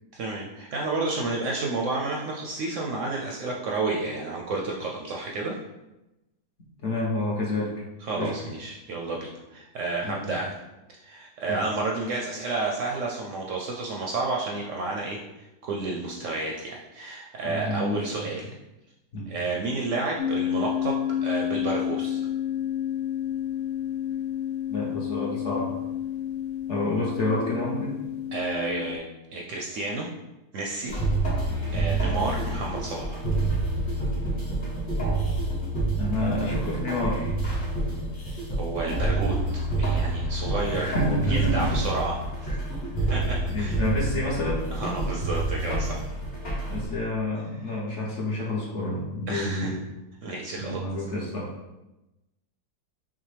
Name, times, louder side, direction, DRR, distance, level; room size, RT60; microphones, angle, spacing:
voice 1, 0.1-5.6 8.0-10.6 10.9-18.5 19.3-22.2 28.3-29.0 29.3-30.1 30.5-30.9 31.7-33.3 38.5-39.4 39.7-42.6 43.1-43.8 44.7-46.0 49.3-49.8 50.2-50.8, right 3 dB, 70° right, -1 dB, 0.8 m, -31 dB
voice 2, 6.8-7.7 8.1-8.3 10.0-10.3 11.5-11.6 17.4-18.1 19.1-19.3 24.7-25.8 26.7-27.9 35.9-37.3 40.7-41.7 42.5-42.6 43.0-43.1 43.5-44.6 46.7-49.8 50.6-51.5, left 1 dB, 55° left, -3 dB, 1.1 m, -29 dB
sound 1, 20.2-29.0, left 10 dB, 90° left, 1.1 m, -30 dB
sound 2, 30.9-46.8, right 2 dB, 35° left, 1.2 m, -28 dB
5.9 x 2.2 x 3.2 m, 0.97 s
omnidirectional pair, 1.7 m